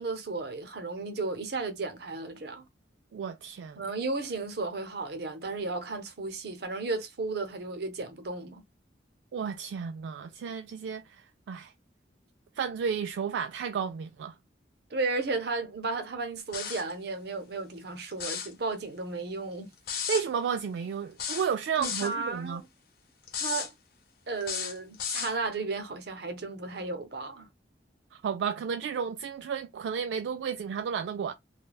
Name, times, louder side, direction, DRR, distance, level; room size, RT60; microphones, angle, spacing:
voice 1, 0.0-2.6 3.8-8.6 14.9-19.7 21.8-22.6 23.4-23.7 24.3-27.5, right 3 dB, 60° right, 0.7 m, -34 dB
voice 2, 3.1-3.8 9.3-11.7 12.6-14.4 20.1-22.6 28.1-31.3, right 7 dB, 80° right, 0.3 m, -32 dB
sound 1, 16.5-16.9 18.1-18.5 19.9-20.2 21.2-22.1 23.3-23.7 24.4-25.3, left 7 dB, 55° left, 0.8 m, -33 dB
3.3 x 2.2 x 2.3 m
head